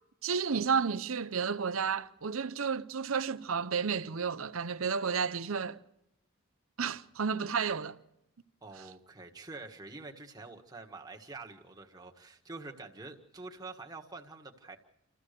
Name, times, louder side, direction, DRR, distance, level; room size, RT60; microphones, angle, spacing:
voice 1, 0.2-5.8 6.8-8.0, right 6 dB, 85° right, 0.8 m, -31 dB
voice 2, 8.6-14.8, right 3 dB, 20° right, 1.5 m, -46 dB
27.5 x 14.5 x 6.7 m
head